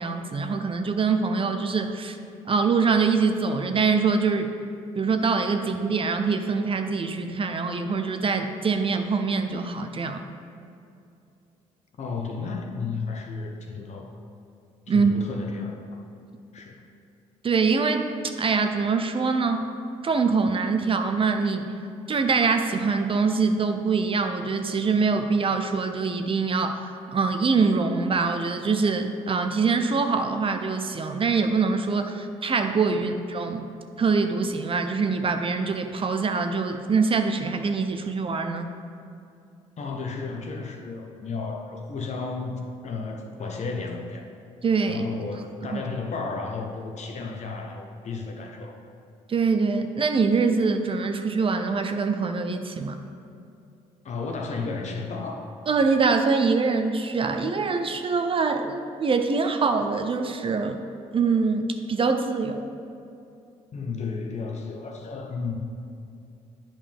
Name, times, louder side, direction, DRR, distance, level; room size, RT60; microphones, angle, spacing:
voice 1, 0.0-2.2 2.5-4.5 5.0-10.2 14.9-15.1 17.4-19.6 20.0-21.7 22.1-33.7 34.0-38.7 44.6-45.1 45.7-45.8 49.3-53.0 55.7-60.8 61.1-62.6, right 4 dB, 40° right, 7 dB, 0.6 m, -24 dB
voice 2, 12.0-14.1 14.9-16.0 16.5-16.9 32.9-33.0 39.8-44.3 44.9-48.8 54.0-55.4 63.7-65.6, left 4 dB, 55° left, 2 dB, 1.0 m, -33 dB
8.7 x 5.2 x 3.5 m, 2.6 s
supercardioid pair, 60°, 14 cm